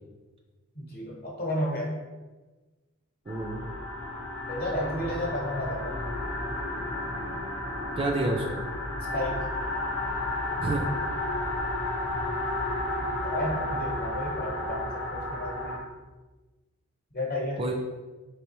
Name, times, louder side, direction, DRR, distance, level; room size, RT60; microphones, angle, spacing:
voice 1, 0.7-2.0 4.5-6.0 9.1-9.4 13.2-15.9 17.1-17.6, left 1 dB, 45° left, -2 dB, 0.9 m, -32 dB
sound 1, 3.3-15.8, left 1 dB, 75° left, 0.8 m, -32 dB
voice 2, 3.3-3.7 8.0-8.6 10.6-10.9 17.6-17.7, right 2 dB, 25° right, 1 dB, 0.3 m, -29 dB
3.3 x 3.3 x 3.0 m, 1.2 s
head